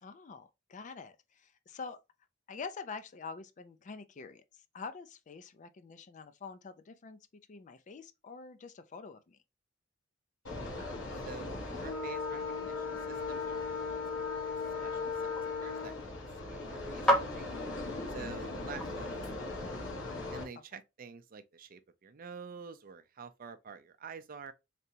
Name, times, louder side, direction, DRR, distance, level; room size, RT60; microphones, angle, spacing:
voice 1, 0.0-2.0 2.5-4.4 4.7-9.4 18.2-18.4, left 5 dB, 40° left, 0.4 m, -46 dB
sound 1, 10.4-20.4, left 4 dB, 80° left, 1.1 m, -38 dB
voice 2, 10.6-14.0 14.4-14.6 14.8-16.1 16.5-17.7 18.1-19.7 20.3-24.5, right 5 dB, 45° right, 0.5 m, -49 dB
sound 2, 14.0-19.9, equal, 5° left, 0.8 m, -37 dB
3.8 x 3.3 x 2.8 m
head